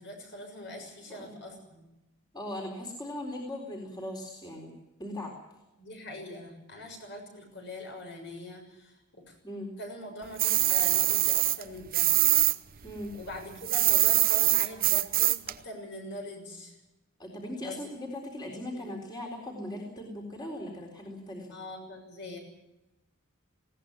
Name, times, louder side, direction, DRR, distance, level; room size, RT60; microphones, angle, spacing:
voice 1, 0.0-1.8 5.8-9.4 9.8-12.4 13.1-16.8 17.6-17.9 18.5-19.0 21.5-22.4, left 1 dB, 50° left, 3 dB, 6.6 m, -43 dB
voice 2, 2.3-4.7 5.0-5.3 9.4-9.7 12.8-13.1 17.2-21.5, left 1 dB, 20° left, 0 dB, 3.9 m, -39 dB
sound 1, 10.4-12.6 12.8-15.5, right 16 dB, 40° right, 0.7 m, -24 dB
20.0 x 17.5 x 9.6 m, 0.96 s
head